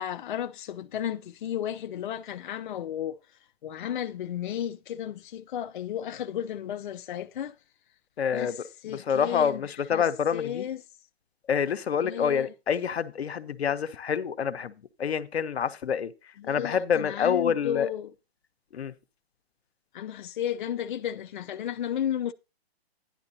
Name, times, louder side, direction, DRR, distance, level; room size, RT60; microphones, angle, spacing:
voice 1, 0.0-3.2 3.6-7.5 8.3-9.6 9.9-10.0 10.3-10.8 12.0-12.5 16.4-18.1 19.9-22.3, left 10 dB, 55° left, 0.5 m, -33 dB
voice 2, 8.2-8.6 8.9-10.7 11.5-14.7 15.0-16.1 16.5-17.9 18.7-18.9, left 7 dB, 85° left, 0.9 m, -27 dB
11.5 x 10.0 x 2.7 m
hypercardioid pair, 155°, 31 cm